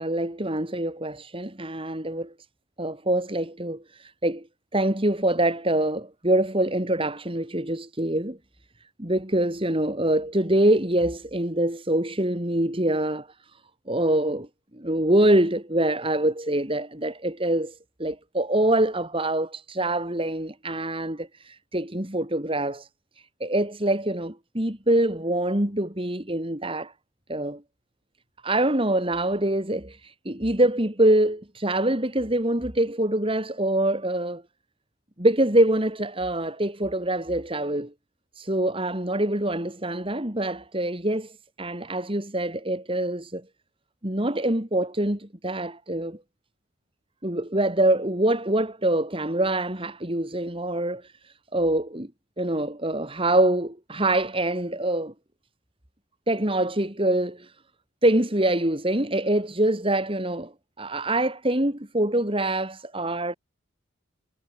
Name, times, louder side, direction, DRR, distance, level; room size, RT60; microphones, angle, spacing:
voice 1, 0.0-2.3 2.8-4.4 4.7-8.4 9.0-13.3 13.9-14.5 14.7-17.7 18.0-22.9 23.4-26.9 27.3-27.6 28.4-34.4 35.2-37.9 38.4-41.3 41.6-43.4 44.0-46.2 47.2-51.0 51.5-52.1 52.4-55.1 56.3-57.5 58.0-60.5 60.8-63.3, right 1 dB, 25° right, 2.8 m, -25 dB
head